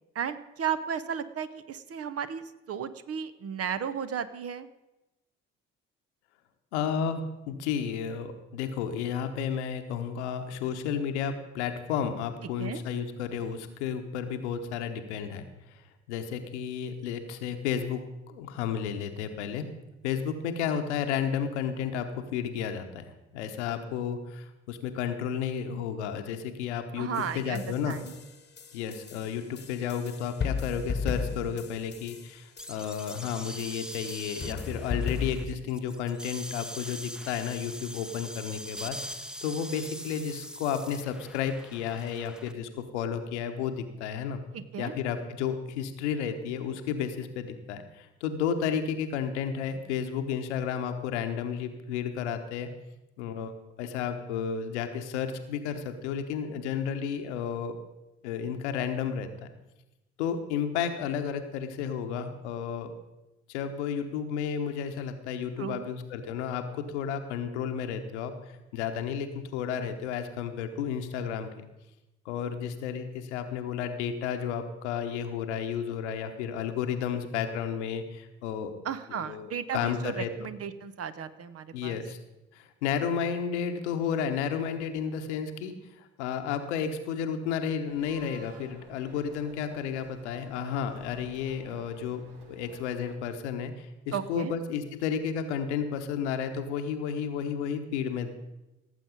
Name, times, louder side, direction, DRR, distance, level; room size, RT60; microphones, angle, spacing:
voice 1, 0.1-4.7 12.6-12.8 27.0-28.1 44.5-44.9 65.6-65.9 78.8-82.0 94.1-94.5, right 7 dB, 45° right, 12 dB, 0.9 m, -34 dB
voice 2, 6.7-15.4 15.7-19.6 20.0-28.0 28.7-39.0 39.4-44.4 44.8-52.7 53.2-53.5 53.8-57.7 58.2-59.5 60.2-62.9 63.5-71.7 72.2-78.7 79.1-80.5 81.7-82.2 82.5-98.3, left 7 dB, 75° left, 7 dB, 1.1 m, -32 dB
sound 1, 27.1-35.6, left 5 dB, 30° left, 1.2 m, -36 dB
sound 2, 32.6-42.5, equal, ahead, 0.8 m, -42 dB
sound 3, 87.9-93.2, right 3 dB, 75° right, 1.5 m, -52 dB
17.5 x 7.6 x 5.3 m, 1.0 s
figure-of-eight pair, 45°, 34 cm